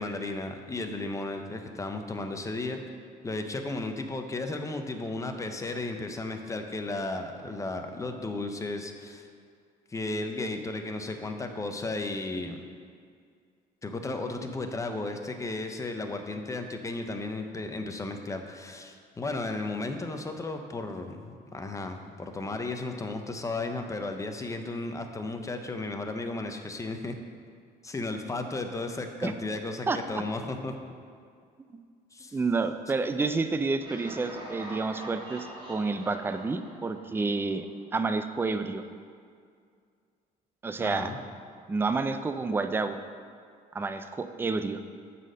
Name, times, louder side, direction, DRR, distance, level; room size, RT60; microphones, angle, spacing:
voice 1, 0.0-2.8 3.2-9.3 9.9-12.6 13.8-27.1 27.8-30.7 32.1-32.4 40.8-41.2, left 2 dB, 20° left, 5 dB, 0.7 m, -34 dB
voice 2, 29.9-30.2 31.7-31.8 32.3-37.7 37.9-38.8 40.6-41.1 41.7-43.0 43.7-44.8, right 3 dB, 15° right, 9 dB, 0.4 m, -29 dB
Laughter, 33.8-37.7, equal, 30° right, 2.3 m, -44 dB
9.2 x 4.2 x 6.4 m, 2.2 s
cardioid pair, 110°, 17 cm